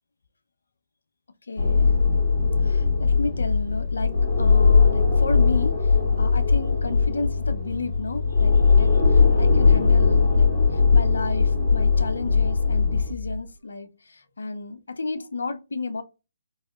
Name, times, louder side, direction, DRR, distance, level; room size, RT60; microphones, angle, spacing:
voice 1, 1.5-1.9 2.6-16.0, left 3 dB, 75° left, 0.5 m, -32 dB
sound 1, 1.6-13.1, left 4 dB, 55° left, 2.1 m, -19 dB
sound 2, 4.2-13.5, left 3 dB, 40° right, 1.5 m, -38 dB
4.1 x 2.8 x 2.3 m
figure-of-eight pair, 140°, 0 cm